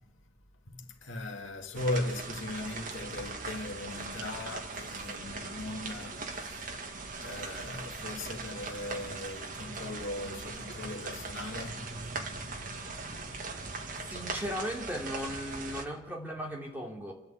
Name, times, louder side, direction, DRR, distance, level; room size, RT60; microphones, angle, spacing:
voice 1, 0.7-6.9 7.1-14.1, left 2 dB, 75° left, 2.1 m, -39 dB
sound 1, 1.8-15.9, right 3 dB, 40° right, 1.9 m, -40 dB
voice 2, 14.1-17.1, equal, 10° right, 3.1 m, -37 dB
28.0 x 12.0 x 8.4 m
head